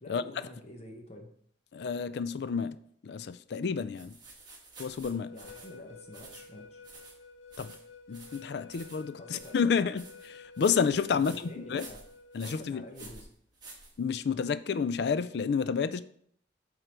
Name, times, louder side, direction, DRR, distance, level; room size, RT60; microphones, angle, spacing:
voice 1, 0.0-1.3 5.3-6.8 9.2-9.9 11.1-12.0 12.4-13.3, equal, 35° left, 1.0 m, -48 dB
voice 2, 1.7-2.8 3.0-4.2 4.8-5.3 7.6-7.8 8.1-11.9 12.3-12.8 14.0-16.0, left 6 dB, 60° left, 0.4 m, -30 dB
sound 1, 3.9-14.4, right 3 dB, 20° right, 1.6 m, -51 dB
sound 2, 5.1-12.9, left 4 dB, 85° left, 0.7 m, -52 dB
7.8 x 3.9 x 4.4 m
head